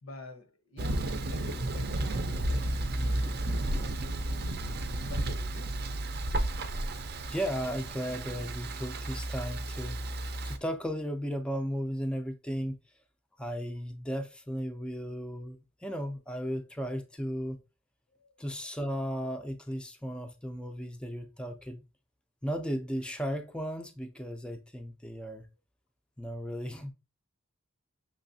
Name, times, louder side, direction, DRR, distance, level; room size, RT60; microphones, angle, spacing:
voice 1, 0.0-4.6 5.1-5.8 18.2-18.3, left 2 dB, 80° left, 0.9 m, -48 dB
Thunder, 0.8-10.6, right 1 dB, 50° right, 0.5 m, -33 dB
voice 2, 7.3-10.0 10.4-12.8 13.4-15.6 15.8-17.6 18.4-21.8 22.4-25.5 26.2-26.9, equal, 5° left, 0.4 m, -35 dB
6.1 x 3.1 x 2.7 m
head